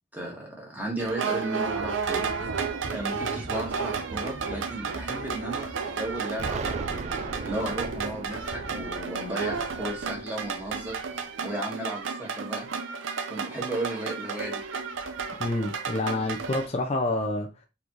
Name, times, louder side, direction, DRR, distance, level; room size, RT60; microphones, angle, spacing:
voice 1, 0.1-2.5 2.9-12.7 13.3-14.6, right 1 dB, 10° right, 1.6 m, -35 dB
sound 1, 1.0-16.7, right 5 dB, 80° right, 0.7 m, -32 dB
Explosion, 6.4-11.2, right 3 dB, 35° right, 0.3 m, -38 dB
voice 2, 15.4-17.7, left 2 dB, 30° left, 0.5 m, -28 dB
4.2 x 3.4 x 3.0 m
head